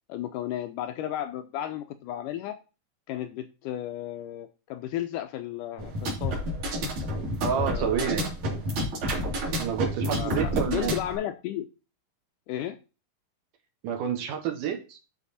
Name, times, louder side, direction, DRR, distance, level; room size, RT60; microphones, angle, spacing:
voice 1, 0.1-2.6 3.1-6.4 7.5-8.3 10.2-11.7 12.5-12.8, left 12 dB, 80° left, 8 dB, 2.0 m, -34 dB
sound 1, 5.8-11.2, equal, 55° right, 3.8 m, -29 dB
voice 2, 7.4-8.3 9.6-11.0 13.8-15.0, right 8 dB, 70° right, 5 dB, 2.7 m, -29 dB
12.0 x 4.2 x 4.1 m, 0.31 s
omnidirectional pair, 4.1 m